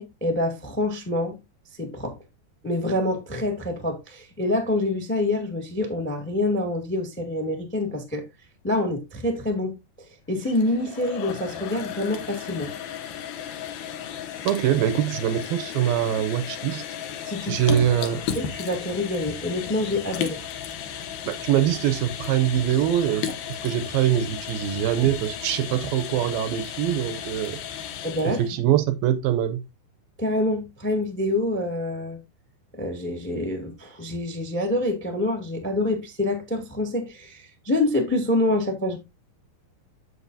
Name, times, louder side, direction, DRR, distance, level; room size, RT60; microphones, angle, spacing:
voice 1, 0.0-1.4 1.8-2.1 2.6-8.2 8.6-9.7 10.3-12.7 17.2-17.8 18.3-20.4 28.0-28.4 30.2-32.2 32.7-39.0, left 1 dB, 10° left, 0.7 m, -26 dB
sound 1, 10.3-28.5, left 9 dB, 75° left, 2.8 m, -35 dB
voice 2, 14.5-16.8 17.5-18.2 21.3-23.3 23.6-27.8 28.2-29.6, right 11 dB, 80° right, 2.3 m, -23 dB
8.1 x 7.6 x 2.7 m
omnidirectional pair, 4.5 m